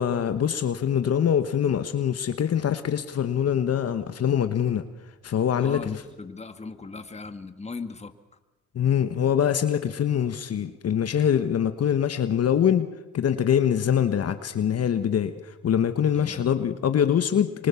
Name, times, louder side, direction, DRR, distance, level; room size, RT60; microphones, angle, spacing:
voice 1, 0.0-4.8 5.2-5.9 8.7-12.9 13.1-15.3 15.6-17.7, left 9 dB, 55° left, 9 dB, 1.3 m, -24 dB
voice 2, 5.6-8.1 16.1-16.5, left 4 dB, 20° left, 8 dB, 1.9 m, -38 dB
26.0 x 24.5 x 7.1 m, 1.1 s
cardioid pair, 90°, 30 cm